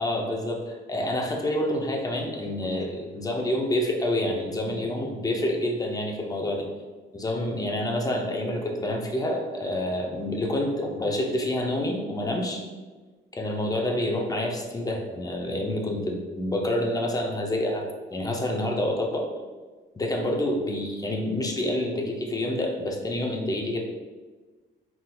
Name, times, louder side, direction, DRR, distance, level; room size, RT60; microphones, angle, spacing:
voice 1, 0.0-6.7 7.1-12.6 13.3-17.9 18.1-19.3 20.0-23.8, left 1 dB, 20° left, 1 dB, 0.5 m, -28 dB
3.9 x 2.8 x 2.2 m, 1.3 s
cardioid pair, 90°, 20 cm